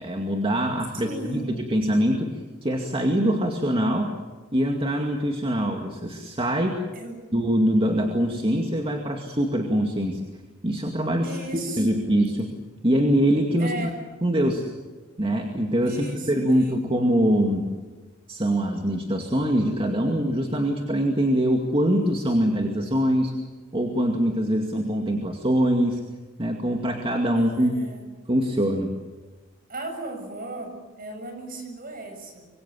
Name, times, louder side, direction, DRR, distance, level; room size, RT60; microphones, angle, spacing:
voice 1, 0.0-1.4 1.7-2.3 2.6-4.1 4.5-6.8 7.3-10.2 10.6-11.3 11.8-12.5 12.8-13.9 14.2-14.6 15.2-17.6 18.3-23.3 23.7-26.0 26.4-27.7 28.3-28.9, equal, 30° right, 2 dB, 2.3 m, -23 dB
voice 2, 0.9-1.5 6.9-7.1 11.2-12.0 13.6-14.0 15.8-16.8 27.3-28.0 29.7-32.5, right 2 dB, 50° right, 5 dB, 6.8 m, -36 dB
25.5 x 23.5 x 7.6 m, 1.3 s
head